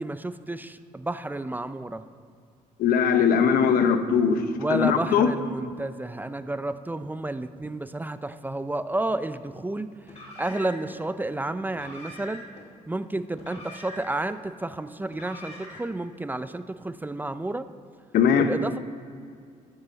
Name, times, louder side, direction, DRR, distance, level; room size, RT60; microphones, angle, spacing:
voice 1, 0.0-2.0 4.6-9.9 10.2-12.4 12.9-17.7 18.3-18.8, right 2 dB, 10° right, 0.4 m, -31 dB
voice 2, 2.8-5.3 18.1-18.5, left 7 dB, 80° left, 0.9 m, -21 dB
Car, 10.0-11.0 11.7-12.6 13.3-14.4 15.1-16.0, left 1 dB, 45° left, 2.3 m, -44 dB
13.5 x 9.6 x 4.1 m
cardioid pair, 100°, 15 cm